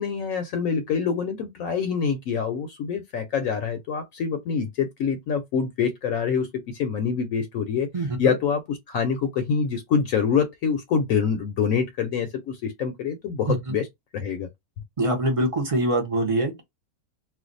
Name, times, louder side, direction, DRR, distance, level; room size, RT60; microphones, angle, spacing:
voice 1, 0.0-7.9 8.2-13.9 14.1-14.5, left 6 dB, 70° left, 0.9 m, -25 dB
voice 2, 7.9-8.4 13.5-13.8 15.0-16.6, right 1 dB, 35° right, 0.5 m, -24 dB
2.5 x 2.2 x 3.8 m
omnidirectional pair, 1.6 m